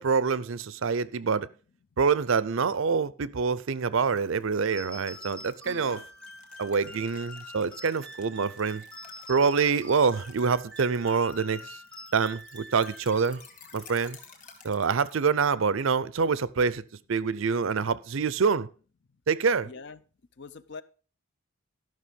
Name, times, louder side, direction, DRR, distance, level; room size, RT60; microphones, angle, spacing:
voice 1, 0.0-1.5 2.0-6.0 6.6-8.8 9.3-11.8 12.1-13.4 13.7-14.2 14.6-16.8 17.1-18.7 19.3-19.7, right 5 dB, 60° right, 0.5 m, -26 dB
sound 1, 4.0-15.2, left 5 dB, 35° left, 1.9 m, -53 dB
sound 2, 4.7-13.7, left 1 dB, 5° left, 1.0 m, -46 dB
voice 2, 5.6-6.1 19.6-20.0 20.4-20.8, left 4 dB, 50° left, 0.6 m, -43 dB
12.5 x 6.0 x 5.2 m
head